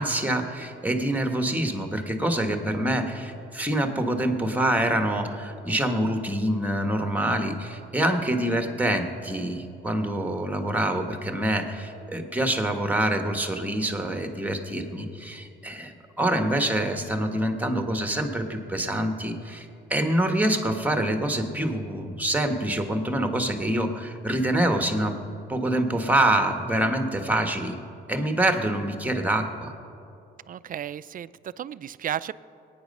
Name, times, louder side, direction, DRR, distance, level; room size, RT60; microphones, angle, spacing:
voice 1, 0.0-25.2 25.5-27.8 28.1-29.7, right 1 dB, 10° right, 6 dB, 1.4 m, -26 dB
voice 2, 30.5-32.3, right 10 dB, 45° right, 17 dB, 0.4 m, -33 dB
22.0 x 9.4 x 5.4 m, 2.7 s
cardioid pair, 90°, 20 cm